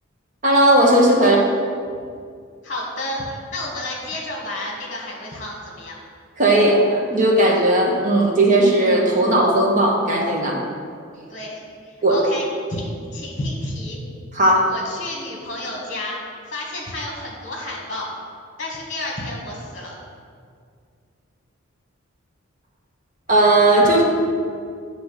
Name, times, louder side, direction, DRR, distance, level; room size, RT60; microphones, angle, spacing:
voice 1, 0.4-1.4 6.4-10.6 12.0-12.2 14.3-14.7 23.3-24.0, right 1 dB, 40° right, -1 dB, 1.0 m, -16 dB
voice 2, 1.2-1.6 2.6-6.0 11.3-14.0 14.7-16.2 16.5-18.1 18.6-19.9, left 1 dB, 35° left, -2 dB, 1.3 m, -31 dB
8.4 x 3.0 x 5.6 m, 2.2 s
head